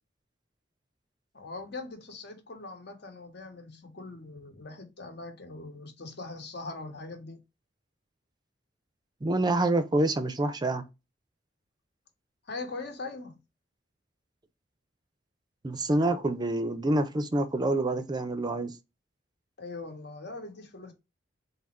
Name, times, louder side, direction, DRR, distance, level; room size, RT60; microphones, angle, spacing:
voice 1, 1.3-7.4 12.4-13.4 19.6-20.9, left 3 dB, 65° left, 1.2 m, -41 dB
voice 2, 9.2-10.8 15.6-18.7, right 2 dB, 25° right, 0.5 m, -27 dB
3.7 x 2.7 x 4.1 m
head